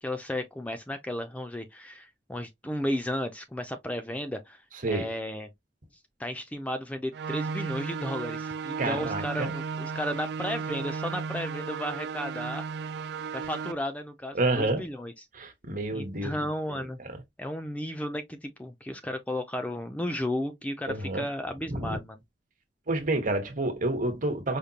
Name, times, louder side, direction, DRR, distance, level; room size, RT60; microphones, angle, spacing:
voice 1, 0.0-5.5 6.2-12.6 13.3-15.2 15.9-17.0 17.4-22.2, left 1 dB, 10° left, 0.4 m, -34 dB
sound 1, 7.1-13.7, right 5 dB, 65° right, 0.3 m, -34 dB
voice 2, 8.8-9.5 14.3-14.8 15.3-17.2 20.9-21.2 21.7-22.0 22.9-24.6, right 2 dB, 45° right, 1.1 m, -29 dB
5.0 x 2.2 x 2.8 m
head